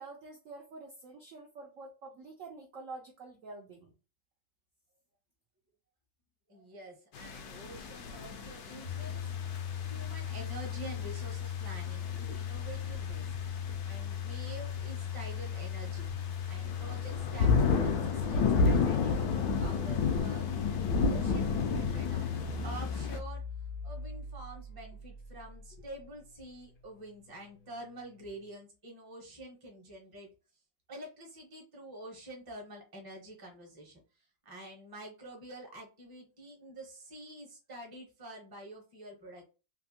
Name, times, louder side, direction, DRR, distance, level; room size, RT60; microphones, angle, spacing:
voice 1, 0.0-3.9, right 3 dB, 75° right, 1 dB, 0.7 m, -47 dB
voice 2, 6.5-9.3 9.9-13.3 13.8-16.1 16.5-20.7 21.0-22.3 22.6-23.5 23.8-30.3 30.9-34.0 34.4-39.4, right 1 dB, 20° right, 0 dB, 0.6 m, -47 dB
sound 1, 7.1-23.2, left 4 dB, 75° left, 1.2 m, -33 dB
Domestic sounds home sounds, 8.8-25.8, left 8 dB, 55° left, 0.7 m, -38 dB
3.3 x 2.6 x 2.7 m, 0.32 s
omnidirectional pair, 2.1 m